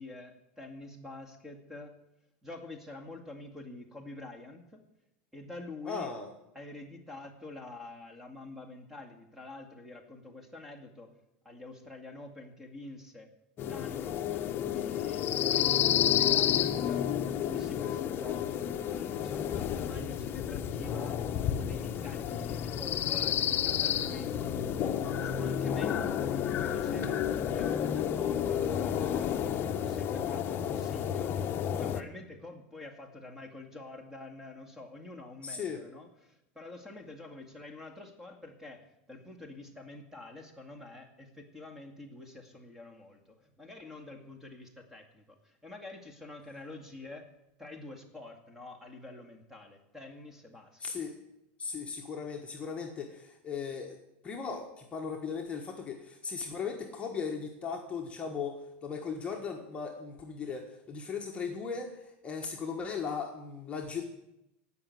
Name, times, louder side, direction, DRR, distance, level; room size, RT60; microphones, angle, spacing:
voice 1, 0.0-2.0 2.4-4.8 5.3-6.1 6.5-11.2 11.4-13.3 13.6-17.1 17.4-21.2 21.6-31.4 31.7-38.8 39.1-47.3 47.6-50.8, left 2 dB, 5° right, 5 dB, 2.0 m, -47 dB
voice 2, 5.8-6.3 35.4-35.8 50.8-51.1 51.6-54.0 54.2-64.0, left 5 dB, 20° left, 1 dB, 1.5 m, -37 dB
sound 1, 13.6-32.0, left 9 dB, 35° left, 0.9 m, -30 dB
16.5 x 6.0 x 9.4 m, 0.87 s
supercardioid pair, 135°, 6 cm